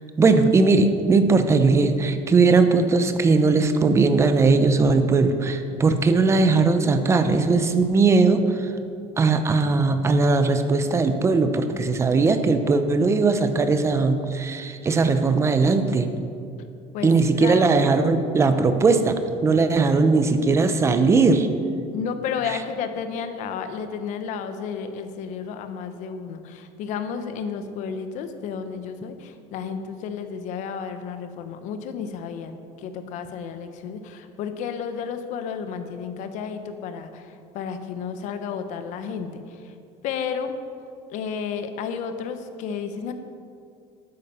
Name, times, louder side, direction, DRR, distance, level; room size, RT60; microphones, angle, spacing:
voice 1, 0.2-8.7 9.2-16.1 17.0-21.5, right 4 dB, 20° right, 8 dB, 0.7 m, -19 dB
voice 2, 16.9-18.0 21.9-39.7 40.0-40.6 41.1-43.1, left 6 dB, 55° left, 8 dB, 1.0 m, -32 dB
12.5 x 9.2 x 5.6 m, 2.5 s
cardioid pair, 165°, 15 cm